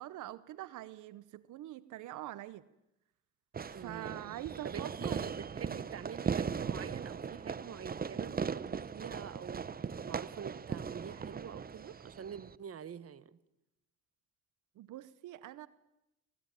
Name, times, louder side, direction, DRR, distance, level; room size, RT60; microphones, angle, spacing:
voice 1, 0.0-2.6 3.7-5.2 14.8-15.7, right 14 dB, 80° right, 17 dB, 0.9 m, -44 dB
Fireworks, 3.5-12.6, right 6 dB, 30° right, 0.8 m, -39 dB
voice 2, 3.7-4.4 4.6-13.4, right 8 dB, 50° right, 16 dB, 1.3 m, -46 dB
25.5 x 18.5 x 9.3 m, 0.90 s
cardioid pair, 90°, 30 cm